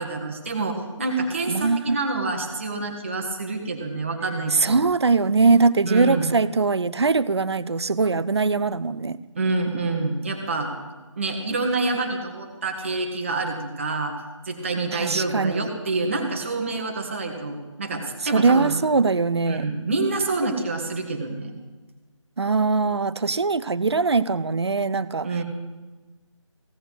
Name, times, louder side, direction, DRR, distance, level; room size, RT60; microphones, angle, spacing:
voice 1, 0.0-4.8 5.8-6.3 9.3-10.7 11.2-14.1 14.4-18.7 19.5-21.5 25.2-25.4, right 3 dB, 25° right, 3 dB, 1.3 m, -27 dB
voice 2, 1.5-2.0 4.6-9.2 14.9-15.7 18.2-19.7 22.4-25.3, right 4 dB, 55° right, 16 dB, 0.5 m, -21 dB
16.0 x 6.6 x 8.0 m, 1.3 s
figure-of-eight pair, 165°, 17 cm